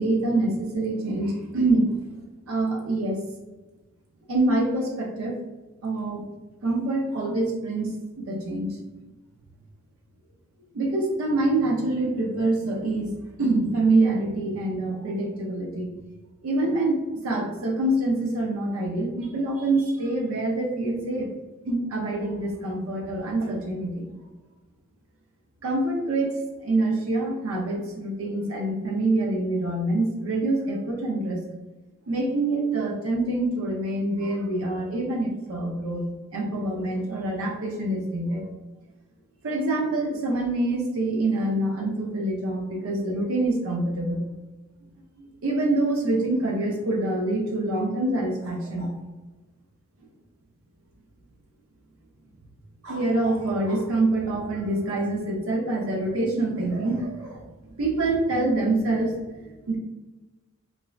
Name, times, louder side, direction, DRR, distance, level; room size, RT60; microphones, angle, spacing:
voice 1, 0.0-2.0 2.5-3.2 4.3-5.4 5.8-6.2 6.6-8.8 10.7-13.1 13.4-15.9 16.4-21.3 21.6-24.1 25.6-31.4 32.1-38.4 39.4-44.2 45.2-49.0 52.8-57.5 57.8-59.1 59.4-59.8, right 2 dB, 90° right, 0 dB, 0.5 m, -25 dB
3.0 x 2.5 x 2.3 m, 1.2 s
head